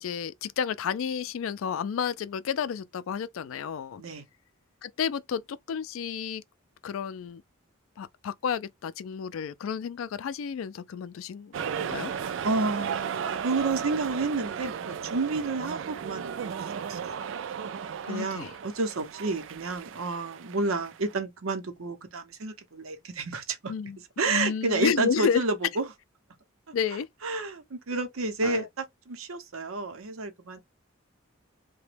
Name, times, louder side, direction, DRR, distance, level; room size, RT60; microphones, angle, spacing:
voice 1, 0.0-4.0 4.8-6.4 6.8-7.4 8.0-12.1 18.0-18.6 23.7-24.0 24.3-25.4 26.7-27.1 28.4-28.7, left 7 dB, 75° left, 0.3 m, -31 dB
sound 1, 11.5-21.1, right 7 dB, 65° right, 0.3 m, -35 dB
voice 2, 12.4-17.3 18.1-23.7 24.2-25.8 27.2-30.6, right 3 dB, 85° right, 0.7 m, -30 dB
2.9 x 2.2 x 3.1 m
head